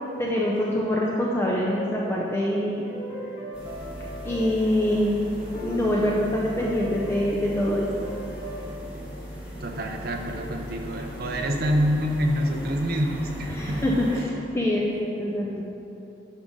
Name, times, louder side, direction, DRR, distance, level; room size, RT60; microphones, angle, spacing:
voice 1, 0.2-2.9 4.2-5.2 5.6-8.1 13.5-15.6, left 1 dB, 10° left, -4 dB, 0.5 m, -25 dB
sound 1, 2.3-4.9 5.4-8.7, right 1 dB, 35° left, 1.8 m, -38 dB
sound 2, 3.5-14.2, equal, 5° right, 1.3 m, -38 dB
voice 2, 9.6-13.8, equal, 50° right, 2 dB, 0.7 m, -26 dB
9.7 x 3.7 x 5.2 m, 2.8 s
head